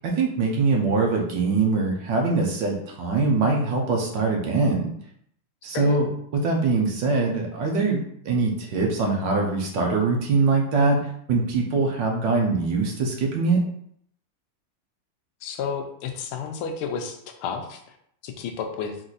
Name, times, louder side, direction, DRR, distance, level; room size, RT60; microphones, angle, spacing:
voice 1, 0.0-4.9 5.6-6.1 6.3-11.0 11.3-13.6, right 3 dB, 65° right, 0 dB, 1.3 m, -23 dB
voice 2, 15.4-18.0 18.2-18.9, left 6 dB, 85° left, 5 dB, 1.5 m, -31 dB
4.6 x 2.6 x 4.0 m, 0.68 s
omnidirectional pair, 2.4 m